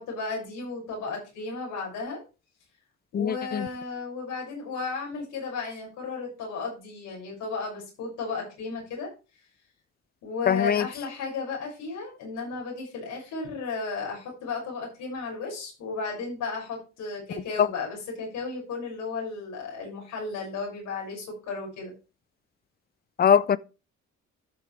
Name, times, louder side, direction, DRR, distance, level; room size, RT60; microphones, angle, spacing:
voice 1, 0.0-2.2 3.1-9.1 10.2-21.9, left 4 dB, 90° left, 6.5 m, -34 dB
voice 2, 3.1-3.7 10.5-10.8 17.6-17.7 23.2-23.6, left 8 dB, 30° left, 0.5 m, -21 dB
14.0 x 6.7 x 3.4 m
cardioid pair, 90°, 30 cm